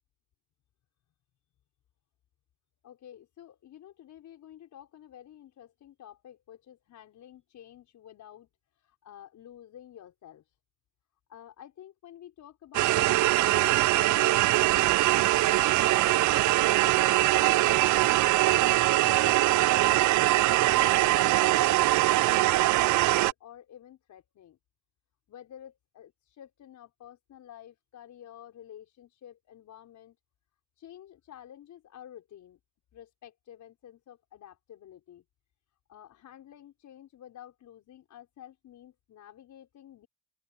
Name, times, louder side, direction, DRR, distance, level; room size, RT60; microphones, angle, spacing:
voice 1, 2.8-8.5 9.0-10.4 11.3-14.9 15.4-18.0 18.5-24.6 25.3-30.2 30.8-32.6 32.9-35.2 35.9-40.1, left 11 dB, 70° left, 5.7 m, -50 dB
sound 1, 12.7-23.3, right 17 dB, 75° right, 0.5 m, -22 dB
open air
cardioid pair, 90°, 30 cm